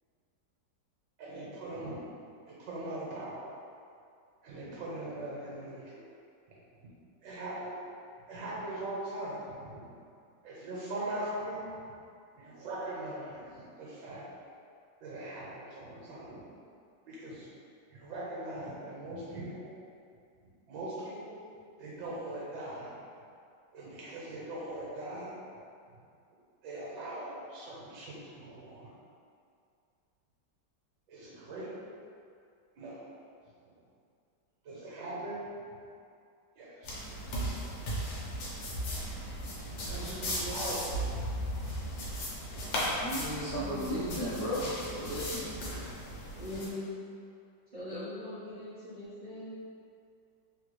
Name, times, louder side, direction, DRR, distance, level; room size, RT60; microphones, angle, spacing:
voice 1, 1.2-2.0 2.5-3.5 4.4-6.1 6.8-6.9 7.2-7.8 8.3-10.0 10.4-11.6 12.3-14.2 15.0-16.4 17.1-17.5 17.9-19.7 20.7-21.4 21.8-23.0 23.7-25.3 26.6-28.9 31.1-31.7 32.8-33.1 34.6-35.5 36.6-37.0 39.9-41.1, right 1 dB, 75° right, -6 dB, 1.4 m, -40 dB
sound 1, 36.8-46.7, equal, 85° left, 1.5 m, -36 dB
voice 2, 43.0-45.5, equal, 65° left, -8 dB, 1.3 m, -35 dB
voice 3, 43.6-44.1 46.3-46.9 47.7-49.5, left 1 dB, 45° right, -13 dB, 0.6 m, -41 dB
3.5 x 2.3 x 3.0 m, 2.4 s
omnidirectional pair, 2.0 m